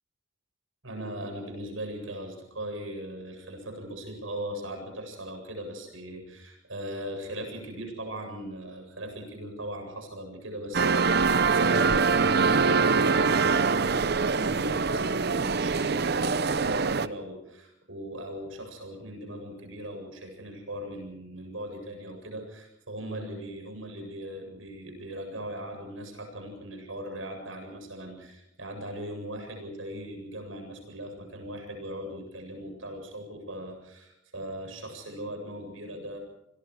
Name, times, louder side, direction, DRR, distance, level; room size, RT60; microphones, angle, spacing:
voice 1, 0.8-36.2, right 1 dB, 90° right, 4 dB, 7.8 m, -39 dB
sound 1, 10.7-17.1, right 4 dB, 50° right, 0.7 m, -24 dB
28.5 x 22.0 x 4.9 m, 0.86 s
head